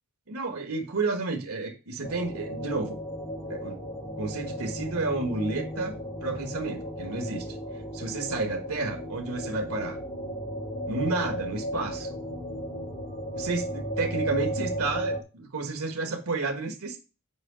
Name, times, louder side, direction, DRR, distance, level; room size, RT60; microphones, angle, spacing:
voice 1, 0.3-3.0 3.5-5.9 6.2-7.6 7.9-10.0 10.8-12.2 13.4-17.0, right 3 dB, 80° right, 4 dB, 1.6 m, -31 dB
sound 1, 2.0-15.2, equal, 45° left, 2.2 m, -35 dB
8.1 x 4.8 x 5.1 m, 0.31 s
head